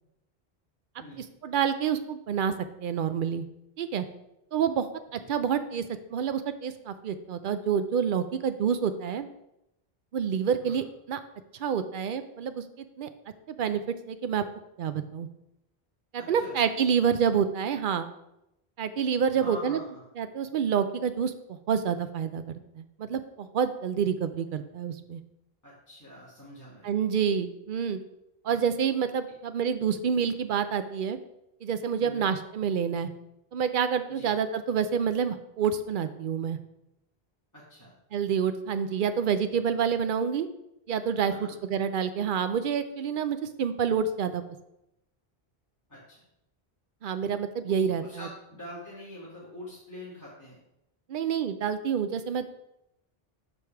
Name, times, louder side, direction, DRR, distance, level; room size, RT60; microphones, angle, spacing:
voice 1, 1.4-2.5 2.8-3.4 3.8-4.0 4.5-4.9 5.1-5.8 6.1-9.3 10.1-11.2 11.6-13.1 13.5-13.8 14.1-14.4 14.8-15.3 16.1-18.1 18.8-19.8 20.2-25.2 26.8-28.0 28.4-31.2 31.6-33.1 33.5-36.6 38.1-40.5 40.9-44.4 47.0-48.3 51.1-52.5, right 7 dB, 60° right, 10 dB, 0.7 m, -28 dB
voice 2, 16.2-16.6 19.3-20.0 25.6-26.8 32.0-32.3 34.1-34.3 37.5-37.9 41.3-41.6 45.9-46.2 47.6-50.6, left 1 dB, 20° left, -9 dB, 1.8 m, -44 dB
5.3 x 4.8 x 5.8 m, 0.84 s
omnidirectional pair, 1.0 m